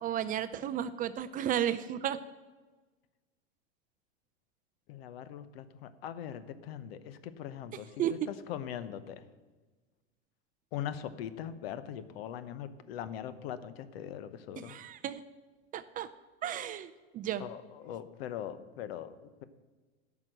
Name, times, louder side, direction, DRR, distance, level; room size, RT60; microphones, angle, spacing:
voice 1, 0.0-2.2 8.0-8.2 14.6-15.2 15.7-16.1 16.4-17.4, right 10 dB, 25° right, 12 dB, 0.4 m, -33 dB
voice 2, 4.9-8.2 8.5-9.2 10.7-14.8 17.4-19.4, left 10 dB, 70° left, 13 dB, 0.9 m, -41 dB
10.5 x 6.0 x 7.8 m, 1.3 s
hypercardioid pair, 110°, 31 cm